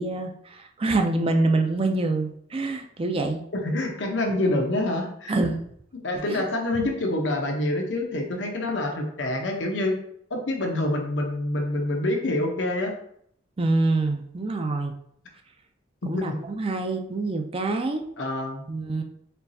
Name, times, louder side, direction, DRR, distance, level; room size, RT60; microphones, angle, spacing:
voice 1, 0.0-3.4 5.3-5.6 6.3-6.5 13.6-14.9 16.1-18.0 18.7-19.0, right 2 dB, 30° right, 5 dB, 0.4 m, -26 dB
voice 2, 3.6-5.3 6.0-10.0 10.3-12.9 16.0-16.4 18.2-18.7, left 1 dB, 90° left, 1 dB, 0.8 m, -26 dB
4.4 x 3.1 x 2.7 m, 0.68 s
head